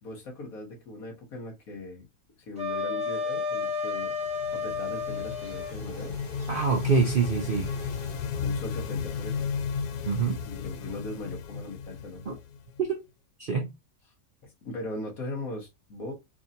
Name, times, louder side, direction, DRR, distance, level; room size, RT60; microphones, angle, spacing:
voice 1, 0.0-2.1 2.4-4.1 4.5-6.2 8.4-9.5 10.5-12.2 14.4-16.1, left 2 dB, 65° left, 1.8 m, -39 dB
Wind instrument woodwind instrument, 2.6-5.8, left 4 dB, 5° right, 1.0 m, -31 dB
sound 1, 3.0-8.3, right 2 dB, 35° right, 1.2 m, -49 dB
sound 2, 4.1-12.9, left 6 dB, 80° left, 1.1 m, -34 dB
voice 2, 6.5-7.7 10.1-10.4 12.3-12.4 12.8-13.0 13.4-13.7, right 5 dB, 55° right, 0.6 m, -25 dB
4.7 x 2.7 x 2.5 m
omnidirectional pair, 1.7 m